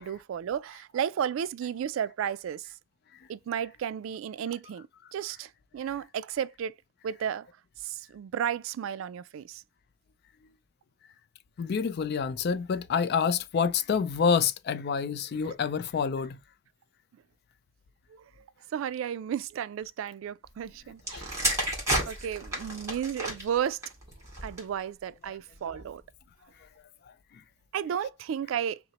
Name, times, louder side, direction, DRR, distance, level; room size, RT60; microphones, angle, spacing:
voice 1, 0.0-2.7 3.3-6.7 7.0-7.5 7.8-9.6 15.4-15.5 18.1-18.2 18.7-21.5 22.1-23.8 24.4-26.0 27.7-28.8, right 8 dB, 80° right, 0.3 m, -33 dB
voice 2, 11.6-16.4 21.1-21.2, left 6 dB, 55° left, 0.4 m, -27 dB
sound 1, 21.0-24.8 25.6-25.9, right 1 dB, 15° right, 2.1 m, -32 dB
5.6 x 2.0 x 2.9 m
head